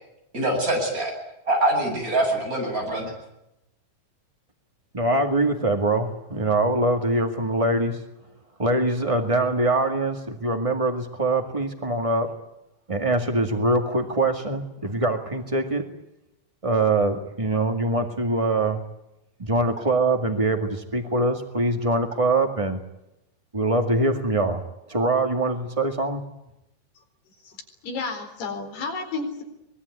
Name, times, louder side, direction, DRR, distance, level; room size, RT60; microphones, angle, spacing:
voice 1, 0.3-1.1 1.5-3.1, right 1 dB, 20° right, 1 dB, 8.4 m, -24 dB
voice 2, 4.9-8.0 8.6-12.3 12.9-15.8 16.6-18.8 19.4-22.8 23.5-24.6 24.9-26.2, right 2 dB, 50° right, 5 dB, 0.4 m, -23 dB
voice 3, 27.8-29.4, left 4 dB, 85° left, 4 dB, 6.3 m, -31 dB
24.0 x 21.0 x 9.8 m, 0.87 s
omnidirectional pair, 4.5 m